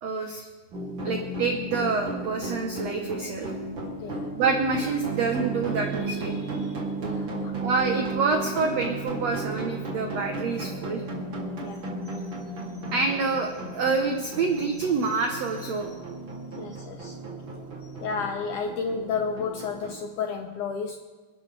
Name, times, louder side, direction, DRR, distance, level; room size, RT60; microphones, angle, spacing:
voice 1, 0.0-0.5 1.0-3.5 4.4-6.7 7.6-11.0 12.9-15.9, right 4 dB, 80° right, 3 dB, 1.5 m, -27 dB
sound 1, 0.7-20.0, right 2 dB, 35° right, 3.2 m, -34 dB
voice 2, 7.0-7.5 11.6-11.8 16.5-17.2 18.0-21.0, left 5 dB, 80° left, 4 dB, 1.8 m, -32 dB
27.5 x 12.0 x 3.4 m, 1.4 s
omnidirectional pair, 4.6 m